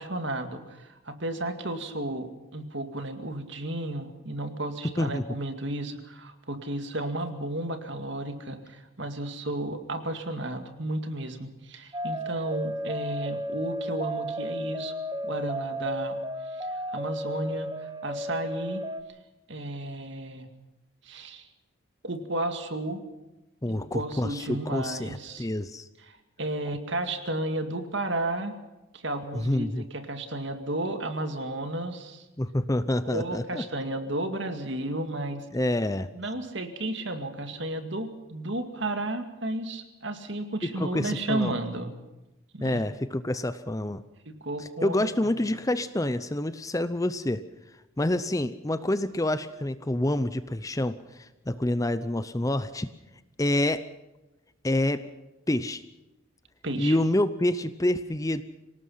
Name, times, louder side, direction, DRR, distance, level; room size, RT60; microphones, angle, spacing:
voice 1, 0.0-15.0 15.2-16.2 16.5-18.8 19.5-20.5 21.0-21.5 22.0-23.0 23.7-25.5 26.1-28.5 28.9-32.3 33.0-35.5 36.1-41.9 42.5-42.9 44.4-45.3 56.6-57.0, right 1 dB, 55° right, 7 dB, 2.2 m, -33 dB
sound 1, 11.9-19.0, equal, 20° right, 1.1 m, -33 dB
voice 2, 23.6-25.9 29.3-29.8 32.4-33.6 35.5-36.1 40.6-41.5 42.6-44.0 44.6-47.4 48.0-52.9 53.4-53.9 54.6-55.1 55.5-55.8 56.8-58.4, left 1 dB, 15° left, 13 dB, 0.6 m, -27 dB
26.0 x 18.5 x 5.7 m, 1.0 s
head